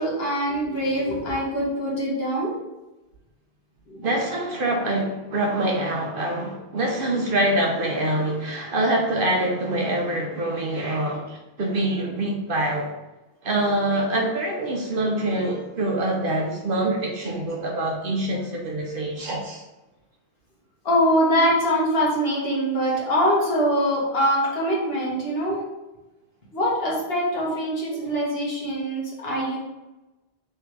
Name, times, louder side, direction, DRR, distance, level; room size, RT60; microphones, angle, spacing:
voice 1, 0.0-2.5 3.9-4.1 20.8-25.6 26.5-29.6, equal, 60° left, -5 dB, 1.5 m, -23 dB
voice 2, 4.0-12.9 13.4-19.6, right 1 dB, 55° right, 0 dB, 0.8 m, -25 dB
3.5 x 3.3 x 4.5 m, 1.0 s
omnidirectional pair, 1.2 m